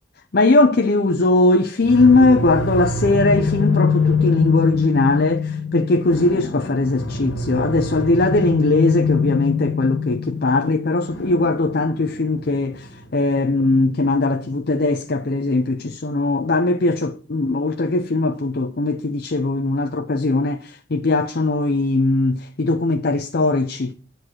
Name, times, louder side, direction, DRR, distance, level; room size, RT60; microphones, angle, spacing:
voice 1, 0.3-23.9, left 2 dB, 55° left, 0.6 m, -19 dB
sound 1, 1.8-14.6, left 5 dB, 80° left, 1.7 m, -24 dB
9.8 x 4.6 x 6.2 m
head